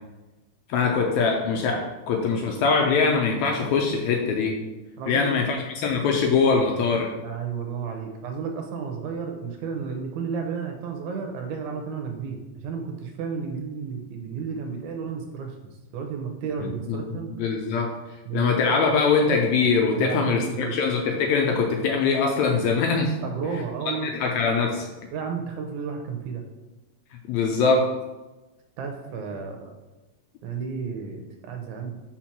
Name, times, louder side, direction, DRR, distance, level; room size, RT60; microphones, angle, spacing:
voice 1, 0.7-4.5 5.1-7.1 16.9-17.0 17.4-17.9 18.3-23.1 24.0-24.9 27.3-27.9, left 4 dB, 85° left, 2 dB, 1.6 m, -22 dB
voice 2, 5.0-5.4 7.2-15.6 15.9-17.3 18.3-18.5 19.9-20.8 23.2-24.1 25.1-26.4 28.8-29.8 30.4-32.0, right 6 dB, 75° right, 3 dB, 1.9 m, -32 dB
4.6 x 4.4 x 5.8 m, 1.1 s
omnidirectional pair, 3.8 m